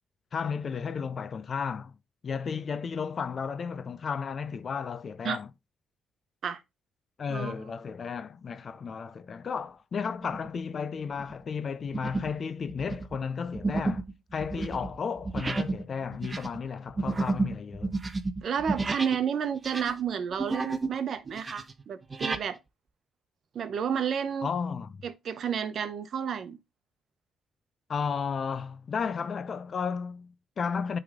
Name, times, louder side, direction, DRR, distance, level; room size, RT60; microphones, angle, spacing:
voice 1, 0.3-1.9 2.2-5.5 7.2-14.1 14.3-17.9 24.4-25.0 27.9-31.0, left 6 dB, 45° left, 0.6 m, -33 dB
voice 2, 7.3-7.6 14.6-14.7 18.4-22.6 23.5-24.5 25.0-26.6, right 7 dB, 60° right, 0.9 m, -31 dB
sound 1, 10.2-10.6 11.1-11.3 11.9-12.4 12.7-19.3 19.5-21.0 21.3-22.5, right 3 dB, 25° right, 0.8 m, -32 dB
9.6 x 3.5 x 3.6 m
cardioid pair, 90°, 0 cm